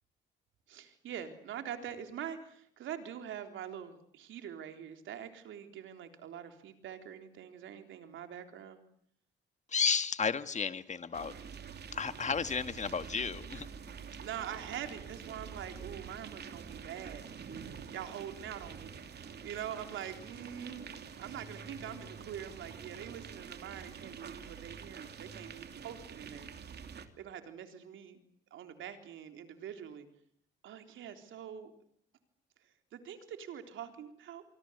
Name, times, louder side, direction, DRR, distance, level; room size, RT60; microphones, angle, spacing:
voice 1, 0.7-8.8 14.2-17.2 17.9-18.9 19.4-26.5 27.2-28.2 28.5-30.1 30.6-31.7 32.9-34.4, right 9 dB, 80° right, 7 dB, 3.8 m, -44 dB
voice 2, 9.7-11.3 11.9-13.7, left 5 dB, 35° left, 12 dB, 1.7 m, -32 dB
sound 1, 11.1-27.1, right 6 dB, 55° right, 3.0 m, -47 dB
26.5 x 25.0 x 8.2 m, 0.67 s
cardioid pair, 90°, 20 cm